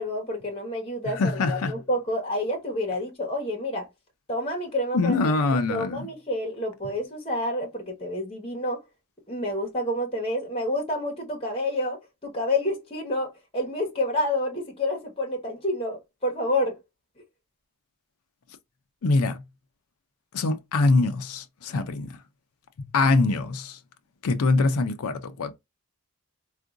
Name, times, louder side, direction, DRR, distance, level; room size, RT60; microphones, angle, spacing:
voice 1, 0.0-3.9 4.3-8.8 9.3-16.8, left 1 dB, 25° left, 1.1 m, -29 dB
voice 2, 1.2-1.7 4.9-6.1 19.0-19.4 20.3-22.2 22.9-23.8 24.2-25.5, left 3 dB, 80° left, 0.5 m, -23 dB
3.7 x 2.5 x 2.4 m
head